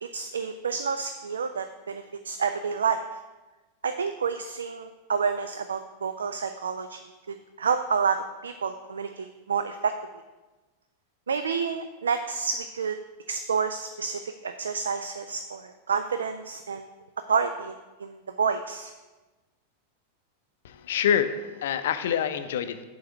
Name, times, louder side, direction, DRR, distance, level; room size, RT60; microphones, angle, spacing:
voice 1, 0.0-3.0 3.8-7.0 7.3-9.9 11.3-13.0 13.3-16.9 17.3-18.9, right 6 dB, 70° right, 9 dB, 0.3 m, -29 dB
voice 2, 20.6-22.8, left 8 dB, 60° left, 10 dB, 0.5 m, -26 dB
7.8 x 3.4 x 6.1 m, 1.2 s
figure-of-eight pair, 90°, 0 cm